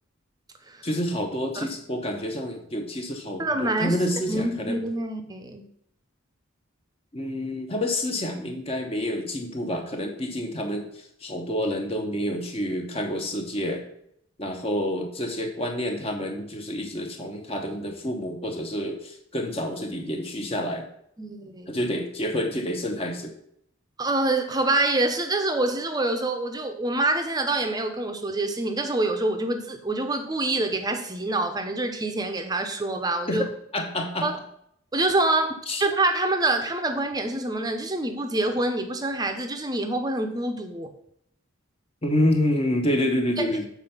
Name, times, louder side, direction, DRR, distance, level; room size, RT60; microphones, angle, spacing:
voice 1, 0.8-4.8 7.1-10.9 11.2-13.8 14.4-20.9 21.7-23.3 33.3-33.4 33.7-34.3 35.7-35.8 42.0-43.6, left 1 dB, 30° left, 3 dB, 0.9 m, -28 dB
voice 2, 3.4-4.0 4.3-5.6 21.2-21.7 24.0-33.4 34.2-34.4 34.9-40.9 43.4-43.6, right 2 dB, 20° right, 5 dB, 0.7 m, -26 dB
7.1 x 4.4 x 5.7 m, 0.72 s
head